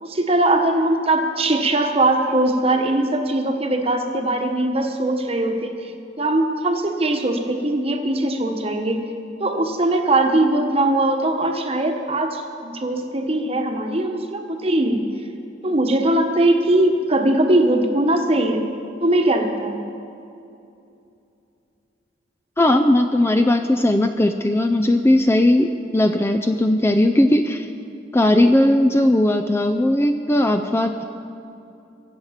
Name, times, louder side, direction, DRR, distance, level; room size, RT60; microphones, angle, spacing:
voice 1, 0.0-5.7 6.2-9.0 9.4-15.1 15.6-18.7 19.0-19.8, right 1 dB, 30° right, 4 dB, 1.2 m, -20 dB
voice 2, 22.6-27.7 28.1-31.0, left 1 dB, 15° left, 6 dB, 0.4 m, -18 dB
22.5 x 8.0 x 5.8 m, 2.7 s
head